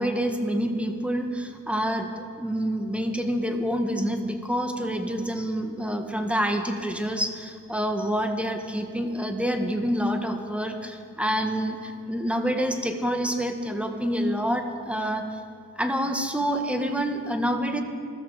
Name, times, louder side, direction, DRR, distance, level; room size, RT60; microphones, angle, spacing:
voice 1, 0.0-15.4 15.7-17.8, equal, 5° right, 5 dB, 1.6 m, -27 dB
20.0 x 13.5 x 5.0 m, 2.3 s
cardioid pair, 90°, 30 cm